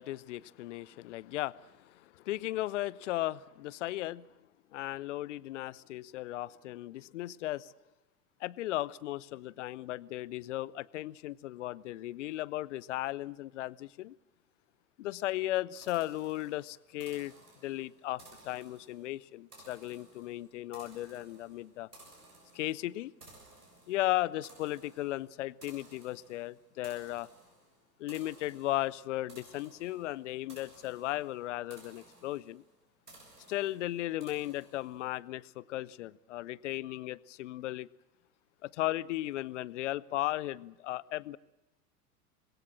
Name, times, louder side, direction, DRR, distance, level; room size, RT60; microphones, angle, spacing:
voice 1, 0.0-4.3 4.7-7.7 8.4-14.1 15.0-17.3 17.6-21.9 22.5-23.1 23.9-27.3 28.0-32.6 33.5-37.9 38.6-41.4, left 15 dB, 50° left, 0.9 m, -36 dB
sound 1, 15.8-35.1, right 2 dB, 85° right, 7.3 m, -58 dB
26.0 x 21.0 x 7.4 m
figure-of-eight pair, 95°, 46 cm